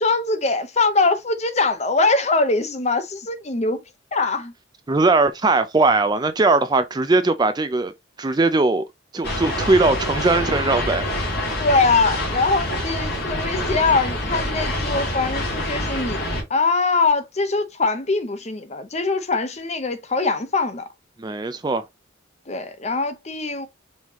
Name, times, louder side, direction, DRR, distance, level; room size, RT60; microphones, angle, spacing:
voice 1, 0.0-3.8 4.1-4.5 11.6-20.9 22.5-23.7, left 3 dB, 35° left, 0.7 m, -22 dB
voice 2, 4.9-7.9 8.2-8.9 9.1-11.0 21.2-21.8, right 3 dB, 20° right, 0.4 m, -19 dB
sound 1, 9.2-16.4, left 1 dB, 50° left, 2.9 m, -26 dB
5.5 x 3.2 x 2.9 m
head